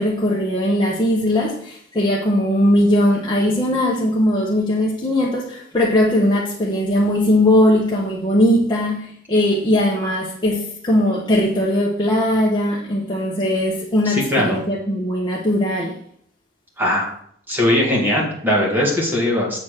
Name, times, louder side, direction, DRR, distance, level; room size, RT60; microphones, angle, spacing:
voice 1, 0.0-15.9, left 1 dB, 25° left, -5 dB, 1.1 m, -19 dB
voice 2, 14.1-14.6 16.8-17.1 17.5-19.6, left 1 dB, 10° right, -3 dB, 2.0 m, -19 dB
7.3 x 4.1 x 6.6 m, 0.64 s
head